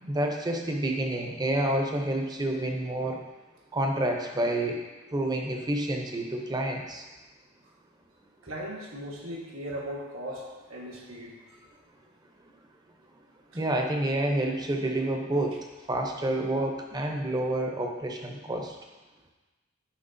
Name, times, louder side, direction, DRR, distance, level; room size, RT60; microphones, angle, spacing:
voice 1, 0.0-3.2 3.7-4.8 5.1-7.0 13.5-15.6 15.9-18.8, right 1 dB, 20° right, 2 dB, 0.7 m, -28 dB
voice 2, 8.4-11.3, equal, 90° right, -2 dB, 1.4 m, -38 dB
9.9 x 4.7 x 2.7 m, 1.2 s
head